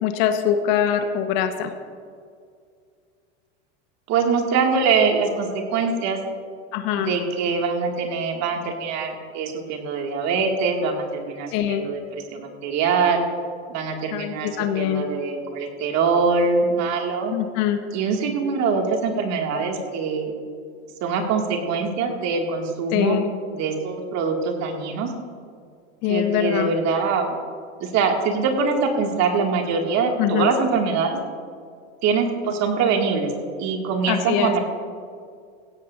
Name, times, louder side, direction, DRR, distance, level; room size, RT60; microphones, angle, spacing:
voice 1, 0.0-1.7 6.7-7.1 11.5-11.8 14.1-15.0 17.3-17.8 22.9-23.3 26.0-26.7 30.2-30.5 34.1-34.5, left 9 dB, 55° left, 7 dB, 1.4 m, -23 dB
voice 2, 4.1-6.2 7.0-13.2 13.7-14.5 14.8-17.3 17.9-20.3 21.0-23.2 23.5-25.1 26.1-27.4 27.8-31.2 32.0-33.3 33.6-34.6, right 5 dB, 50° right, 2 dB, 2.3 m, -23 dB
16.5 x 14.5 x 2.7 m, 2.2 s
hypercardioid pair, 90°, 35 cm